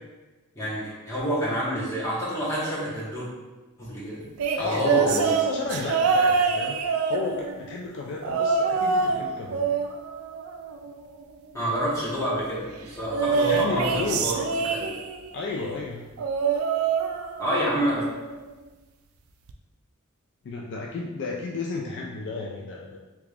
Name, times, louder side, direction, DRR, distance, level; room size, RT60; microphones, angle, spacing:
voice 1, 0.5-3.3 3.8-4.2 4.5-5.4 11.5-14.4 14.6-14.9 17.4-18.0, equal, 15° left, -8 dB, 1.1 m, -28 dB
sound 1, 4.4-7.7 8.2-9.2 9.5-11.1 13.1-15.3 16.2-17.7 18.0-18.4 19.5-19.6, right 5 dB, 75° right, 0.3 m, -25 dB
voice 2, 4.5-6.8 7.1-9.7 13.5-14.2 15.3-16.1 20.4-23.0, left 3 dB, 55° left, -1 dB, 0.3 m, -32 dB
3.5 x 3.3 x 2.4 m, 1.2 s
head